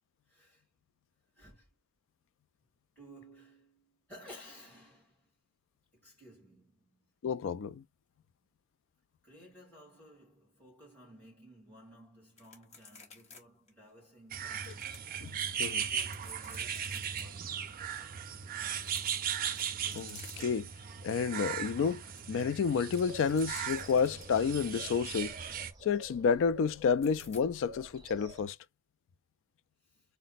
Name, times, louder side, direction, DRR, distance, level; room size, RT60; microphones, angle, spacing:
voice 1, 0.3-0.6 1.3-1.7 3.0-5.3 5.9-7.1 9.2-14.9 15.7-17.7 29.9-30.0, equal, 5° left, 2.7 m, -56 dB
voice 2, 7.2-7.8 15.2-15.8 19.9-20.7 21.0-22.0 22.3-25.3 25.8-28.6, left 6 dB, 55° left, 0.3 m, -30 dB
sound 1, 12.4-13.4 13.7-13.8 14.3-15.5 15.9-17.2 18.7-20.8 21.2-21.4 21.7-24.5 27.0-27.4, left 4 dB, 30° left, 1.3 m, -54 dB
sound 2, 14.3-25.7, right 8 dB, 40° right, 0.5 m, -38 dB
sound 3, 23.0-28.4, left 1 dB, 20° right, 1.0 m, -51 dB
4.1 x 2.1 x 4.0 m
head